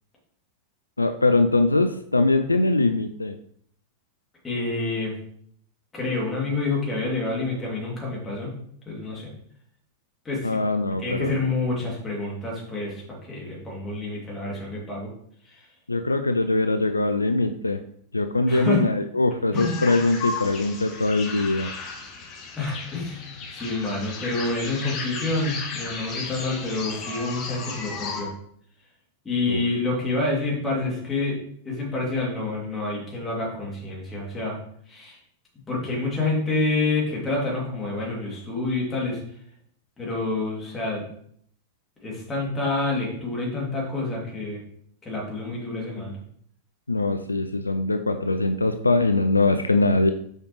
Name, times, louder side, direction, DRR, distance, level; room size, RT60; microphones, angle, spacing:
voice 1, 1.0-3.3 10.4-11.4 15.9-17.8 18.1-21.7 29.5-29.6 46.9-50.1, left 2 dB, 80° left, 9 dB, 0.3 m, -22 dB
voice 2, 4.4-5.1 5.9-8.5 8.9-9.3 10.2-10.6 11.0-15.1 15.5-15.6 18.5-18.9 19.5-19.8 22.6-28.3 29.2-31.4 31.6-34.6 34.9-35.2 35.7-39.2 40.0-41.0 42.0-44.6 45.0-46.1, left 3 dB, 15° left, -4 dB, 2.7 m, -28 dB
sound 1, 19.5-28.2, left 4 dB, 35° left, 1.4 m, -35 dB
6.3 x 4.9 x 3.2 m, 0.65 s
figure-of-eight pair, 90°, 0 cm